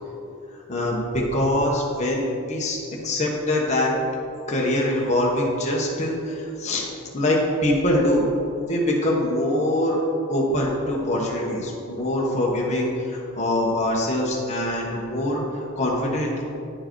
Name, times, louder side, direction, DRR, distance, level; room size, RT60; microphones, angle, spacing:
voice 1, 0.5-3.9 4.5-6.9 7.1-8.2 8.7-10.0 10.3-16.4, left 1 dB, 30° left, -3 dB, 1.1 m, -24 dB
10.0 x 4.7 x 4.6 m, 2.7 s
head